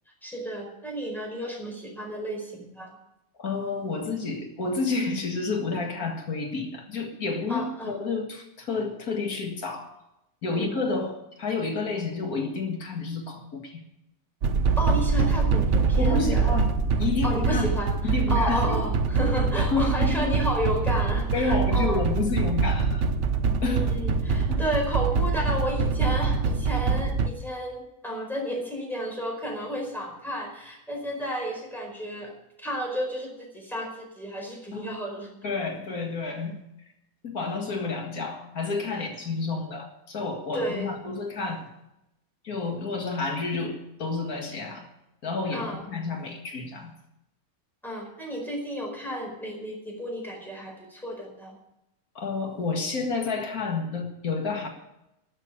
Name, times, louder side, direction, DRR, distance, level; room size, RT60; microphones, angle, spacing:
voice 1, 0.2-2.9 7.5-7.9 10.5-10.8 14.8-16.6 17.2-22.0 23.6-32.3 32.6-35.3 39.0-39.1 40.5-41.0 45.5-45.8 47.8-51.6, equal, ahead, -1 dB, 4.8 m, -32 dB
voice 2, 3.4-9.9 10.4-13.8 16.0-17.7 18.0-18.8 19.6-20.4 21.3-23.0 23.6-23.9 24.5-24.6 26.7-26.8 34.7-34.9 35.4-36.6 37.2-41.7 42.4-44.9 45.2-46.9 52.2-54.7, left 4 dB, 85° left, 2 dB, 2.3 m, -30 dB
sound 1, 14.4-27.3, right 4 dB, 60° right, 1.1 m, -24 dB
12.5 x 7.7 x 9.7 m, 0.87 s
omnidirectional pair, 1.5 m